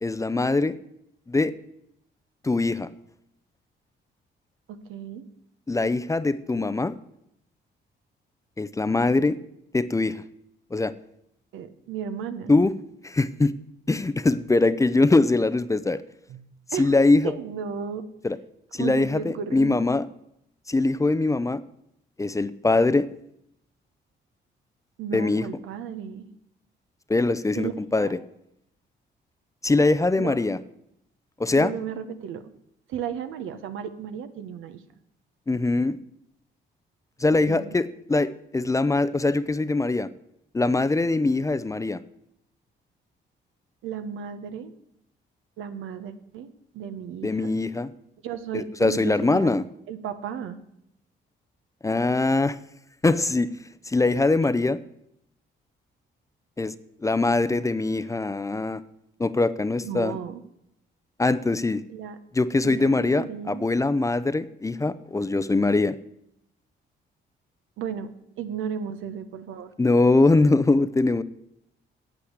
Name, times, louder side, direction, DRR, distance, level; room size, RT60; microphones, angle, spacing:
voice 1, 0.0-0.8 1.3-1.5 2.4-2.9 5.7-7.0 8.6-9.4 9.7-10.2 10.7-10.9 12.5-12.7 13.0-13.6 13.9-16.0 16.8-17.3 18.2-18.4 18.7-20.1 20.7-21.6 22.2-23.1 25.1-25.5 27.1-28.2 29.6-30.6 31.4-31.7 35.5-36.0 37.2-40.1 40.5-42.0 47.2-47.9 48.5-49.6 51.8-52.6 53.0-53.5 53.9-54.8 56.6-56.7 57.0-58.8 59.2-60.2 61.2-61.8 62.3-66.0 69.8-71.2, left 3 dB, 15° left, 14 dB, 0.5 m, -22 dB
voice 2, 4.7-5.2 11.5-12.5 16.3-16.4 16.7-16.9 17.2-18.0 18.7-19.8 25.0-26.3 27.5-27.7 28.0-28.1 30.2-30.5 31.5-32.5 32.9-34.8 37.3-37.7 43.8-44.7 45.6-46.5 46.7-47.5 48.2-49.6 49.9-50.6 59.8-60.4 61.9-62.2 62.6-63.7 67.8-68.1 68.4-69.7, right 7 dB, 85° right, 10 dB, 1.0 m, -34 dB
8.6 x 8.4 x 8.0 m, 0.78 s
cardioid pair, 90°, 20 cm